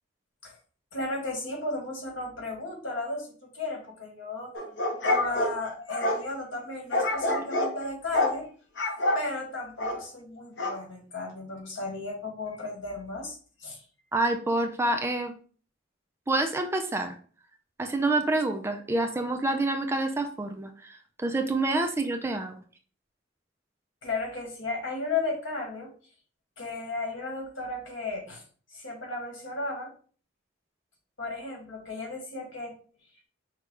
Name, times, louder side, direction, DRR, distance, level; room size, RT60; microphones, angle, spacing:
voice 1, 0.9-4.5 5.0-8.5 9.1-13.8 24.0-25.9 26.6-28.4 28.7-29.9 31.2-32.7, left 2 dB, 80° left, 0 dB, 1.7 m, -34 dB
sound 1, 4.5-6.2 6.9-7.7 8.1-8.4 8.8-9.2 9.8-10.0 10.6-10.8, left 1 dB, 65° left, 0.8 m, -27 dB
voice 2, 14.1-15.3 16.3-17.2 17.8-22.6, right 2 dB, 15° right, 4 dB, 0.4 m, -27 dB
5.8 x 2.3 x 3.2 m, 0.42 s
head